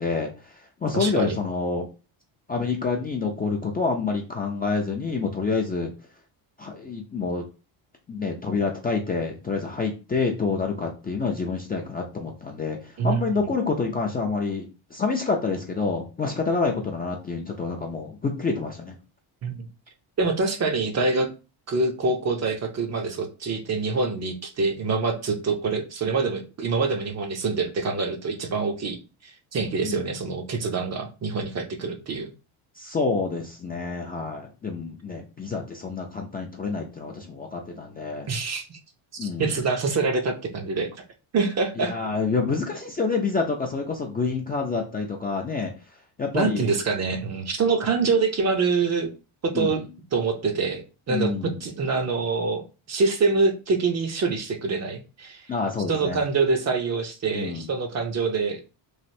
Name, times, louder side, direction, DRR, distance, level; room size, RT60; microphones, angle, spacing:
voice 1, 0.0-1.9 2.5-5.9 6.6-7.4 8.1-19.0 29.8-30.1 32.8-38.3 39.2-39.5 41.8-45.7 46.2-46.7 49.5-49.8 51.1-51.6 55.5-56.2 57.3-57.7, left 4 dB, 20° left, 0 dB, 0.3 m, -28 dB
voice 2, 0.9-1.4 13.0-13.5 19.4-19.7 20.2-21.3 21.7-32.3 38.3-38.8 39.1-40.9 41.3-42.0 46.3-49.1 49.4-49.8 50.1-55.5 55.9-58.6, right 4 dB, 35° right, 6 dB, 0.5 m, -25 dB
3.2 x 2.5 x 2.6 m, 0.31 s
cardioid pair, 115°, 48 cm